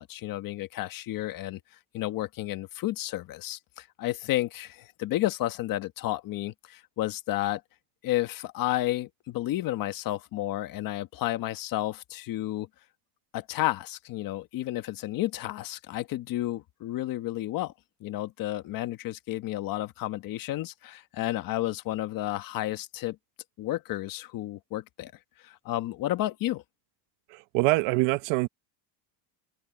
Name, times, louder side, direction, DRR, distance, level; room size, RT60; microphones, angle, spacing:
voice 1, 0.0-1.6 1.9-7.6 8.0-12.7 13.3-17.7 18.0-23.2 23.6-25.1 25.4-26.6, left 15 dB, 45° left, 1.5 m, -31 dB
voice 2, 27.5-28.5, right 22 dB, 65° right, 1.1 m, -24 dB
cardioid pair, 160°, 47 cm